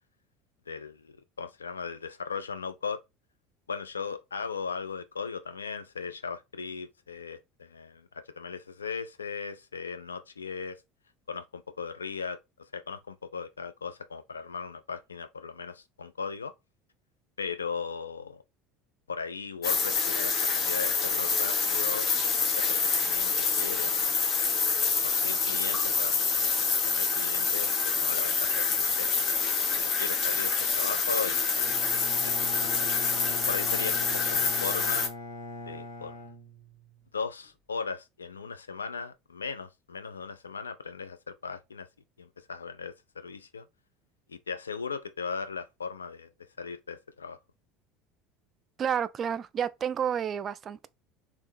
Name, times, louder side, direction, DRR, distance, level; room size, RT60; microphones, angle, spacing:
voice 1, 0.7-3.0 3.7-8.1 8.3-10.8 11.3-12.4 12.7-16.5 17.4-18.4 19.1-23.9 24.6-29.1 29.8-31.7 32.2-32.9 33.5-35.1 35.7-36.2 37.1-41.9 42.2-43.7 44.3-46.3 46.6-47.4, left 5 dB, 85° left, 0.4 m, -37 dB
sound 1, 19.6-35.1, left 5 dB, 45° left, 0.9 m, -27 dB
Bowed string instrument, 31.6-37.1, left 1 dB, 70° left, 1.7 m, -41 dB
voice 2, 48.8-50.9, right 8 dB, 40° right, 0.3 m, -30 dB
3.6 x 3.1 x 2.6 m
figure-of-eight pair, 70°, 0 cm